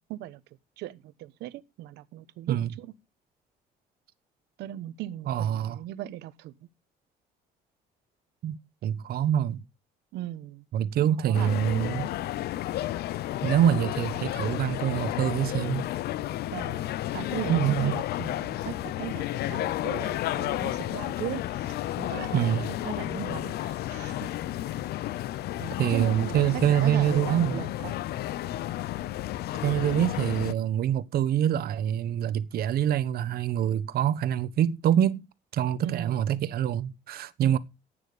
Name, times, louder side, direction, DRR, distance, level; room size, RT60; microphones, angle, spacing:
voice 1, 0.1-0.4 0.8-2.9 4.6-6.5 10.1-10.6 11.0-11.5 16.5-22.6 22.8-24.3 25.6-28.0 35.8-36.2 37.4-37.6, right 14 dB, 85° right, 1.2 m, -38 dB
voice 2, 5.3-5.8 8.4-9.6 10.7-12.1 13.4-15.9 17.5-17.9 22.3-22.7 25.8-27.6 29.6-35.2 35.5-37.6, right 10 dB, 65° right, 1.3 m, -25 dB
sound 1, 11.3-30.5, left 14 dB, 70° left, 0.8 m, -32 dB
15.0 x 9.0 x 5.1 m
cardioid pair, 110°, 17 cm